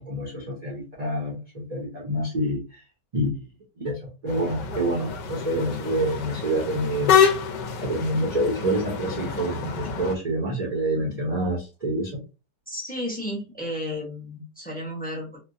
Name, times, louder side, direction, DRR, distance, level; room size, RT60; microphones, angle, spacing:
voice 1, 0.0-2.6 3.1-3.4 3.8-7.2 7.8-12.1, right 1 dB, 40° right, -1 dB, 0.5 m, -27 dB
sound 1, 4.3-10.2, left 7 dB, 80° left, 1.3 m, -26 dB
voice 2, 12.7-15.4, left 1 dB, 10° left, -1 dB, 0.5 m, -33 dB
4.2 x 2.1 x 2.6 m, 0.29 s
omnidirectional pair, 1.9 m